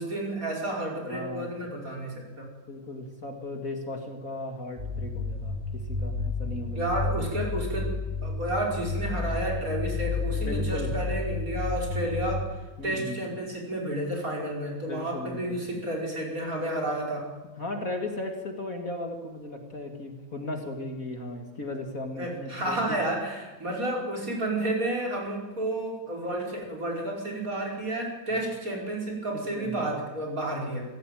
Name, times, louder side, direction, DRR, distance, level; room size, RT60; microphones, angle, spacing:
voice 1, 0.0-2.5 6.7-7.9 8.2-12.5 12.8-17.3 22.2-30.8, right 1 dB, 40° right, -1 dB, 5.7 m, -31 dB
voice 2, 1.1-1.5 2.7-6.8 10.4-10.9 12.8-13.2 14.9-15.6 17.6-23.0 29.3-29.9, left 2 dB, 40° left, 4 dB, 2.7 m, -36 dB
sound 1, 4.8-12.4, left 3 dB, 20° right, 4.7 m, -31 dB
28.0 x 15.5 x 9.2 m, 1.2 s
omnidirectional pair, 2.2 m